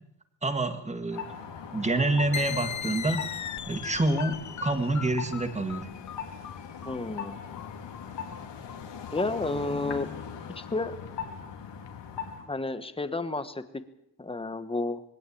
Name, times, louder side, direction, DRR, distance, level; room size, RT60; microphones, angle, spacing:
voice 1, 0.4-1.2 1.7-3.3 3.7-5.9, right 2 dB, 15° right, 8 dB, 1.8 m, -27 dB
sound 1, 1.1-12.5, left 7 dB, 85° left, 3.1 m, -40 dB
sound 2, 2.3-9.6, left 9 dB, 45° left, 0.8 m, -39 dB
voice 2, 6.8-7.4 9.1-10.1 10.6-10.9 12.5-13.6 14.2-15.0, left 2 dB, 15° left, 11 dB, 1.2 m, -31 dB
22.5 x 17.0 x 8.5 m, 0.81 s
wide cardioid pair, 170°, 42 cm